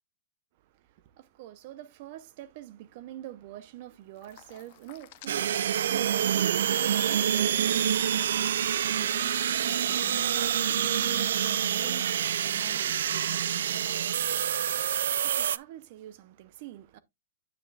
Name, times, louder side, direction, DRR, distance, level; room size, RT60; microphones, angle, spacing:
voice 1, 0.6-8.8 15.0-17.0, right 13 dB, 50° right, 0.7 m, -45 dB
sound 1, 4.2-6.1 6.4-11.3, left 16 dB, 50° left, 0.7 m, -51 dB
sound 2, 5.3-15.6, right 9 dB, 75° right, 0.4 m, -27 dB
voice 2, 9.0-14.0, left 1 dB, ahead, 1.0 m, -50 dB
9.1 x 6.7 x 2.3 m
hypercardioid pair, 140°, 0 cm